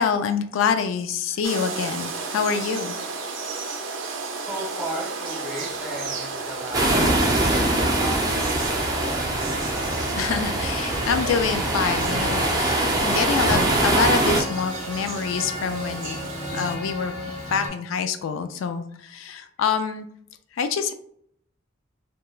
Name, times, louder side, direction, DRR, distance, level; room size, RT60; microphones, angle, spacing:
voice 1, 0.0-3.0 10.2-16.2 16.5-17.2 17.5-20.1 20.6-20.9, left 6 dB, 85° left, 10 dB, 0.3 m, -26 dB
sound 1, 1.4-16.8, right 4 dB, 85° right, 0.4 m, -34 dB
voice 2, 4.5-9.5, right 1 dB, 5° right, -5 dB, 1.1 m, -36 dB
Male speech man speaking, 5.7-17.7, left 1 dB, 35° left, 1.0 m, -36 dB
sound 2, 6.7-14.4, right 1 dB, 20° right, 0.4 m, -23 dB
2.9 x 2.2 x 2.3 m, 0.67 s
head